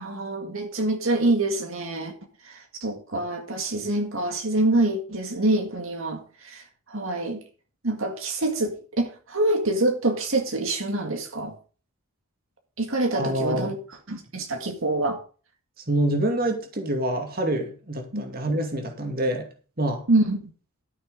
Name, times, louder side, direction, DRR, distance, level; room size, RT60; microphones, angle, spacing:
voice 1, 0.0-2.1 2.4-7.4 7.8-11.5 12.8-13.8 14.1-15.2 18.1-18.2 20.1-20.4, right 2 dB, 65° right, 4 dB, 1.9 m, -26 dB
voice 2, 13.1-13.7 15.9-19.5 19.8-20.0, right 1 dB, 40° right, 4 dB, 2.3 m, -26 dB
13.0 x 6.7 x 5.0 m, 0.37 s
head